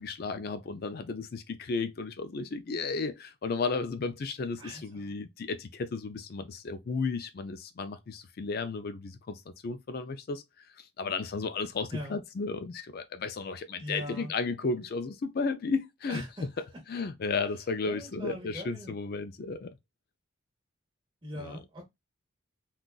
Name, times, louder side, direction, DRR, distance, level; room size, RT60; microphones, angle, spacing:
voice 1, 0.0-10.4 10.8-16.2 16.9-19.7 21.4-21.6, left 4 dB, 50° left, 0.4 m, -34 dB
voice 2, 4.6-5.1 11.9-12.1 13.8-14.3 16.1-16.4 17.8-18.9 21.2-21.8, equal, 25° right, 1.2 m, -40 dB
3.8 x 2.4 x 2.4 m
head